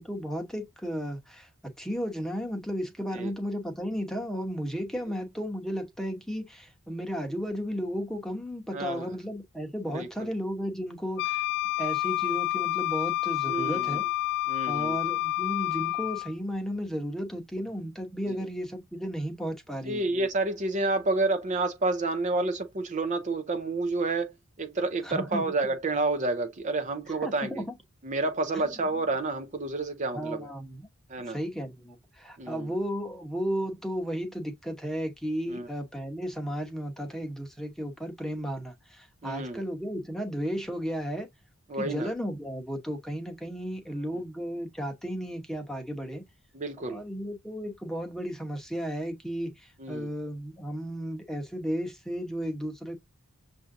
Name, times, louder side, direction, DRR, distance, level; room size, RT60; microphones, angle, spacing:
voice 1, 0.0-1.5 1.8-11.4 11.8-14.0 14.7-20.0 25.0-25.4 27.1-27.8 28.5-28.7 30.1-30.9 31.3-41.3 41.8-46.2 46.8-53.0, equal, ahead, 0.9 m, -34 dB
voice 2, 8.7-9.1 9.9-10.3 13.5-14.0 14.5-15.0 19.8-24.3 24.6-27.6 28.0-30.5 31.1-31.4 32.4-32.7 35.5-35.7 39.2-39.6 41.7-42.1 46.5-47.0 49.8-50.1, right 2 dB, 35° right, 0.5 m, -29 dB
Wind instrument woodwind instrument, 11.2-16.3, left 16 dB, 50° left, 0.4 m, -29 dB
6.9 x 2.7 x 2.5 m
head